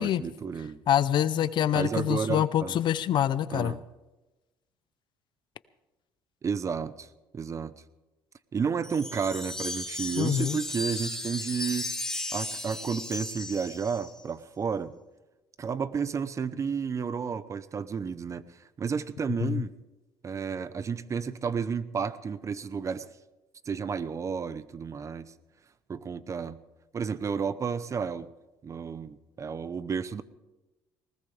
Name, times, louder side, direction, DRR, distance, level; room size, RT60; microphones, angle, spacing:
voice 1, 0.0-0.8 1.7-2.7 3.5-3.8 6.4-7.1 7.3-7.7 8.5-11.9 12.3-14.9 15.6-18.4 18.8-19.7 20.2-23.1 23.7-25.3 25.9-26.6 26.9-28.3 28.6-30.2, right 6 dB, 35° right, 16 dB, 0.8 m, -32 dB
voice 2, 0.9-3.7 10.2-10.6 19.4-19.6, left 10 dB, 55° left, 16 dB, 0.6 m, -26 dB
Wind chime, 8.8-14.2, left 2 dB, 5° left, 2.3 m, -35 dB
20.0 x 19.0 x 3.4 m, 1.1 s
cardioid pair, 100°, 9 cm